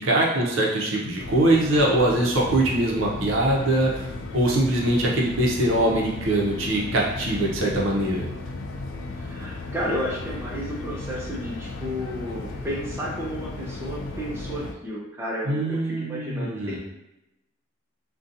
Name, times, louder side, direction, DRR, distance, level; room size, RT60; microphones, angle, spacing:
voice 1, 0.0-8.3 15.5-16.8, right 1 dB, 80° right, -2 dB, 0.6 m, -22 dB
sound 1, 1.2-14.7, left 2 dB, 80° left, 0.3 m, -35 dB
voice 2, 9.1-16.8, equal, 10° right, -6 dB, 0.3 m, -32 dB
2.6 x 2.2 x 2.5 m, 0.91 s
head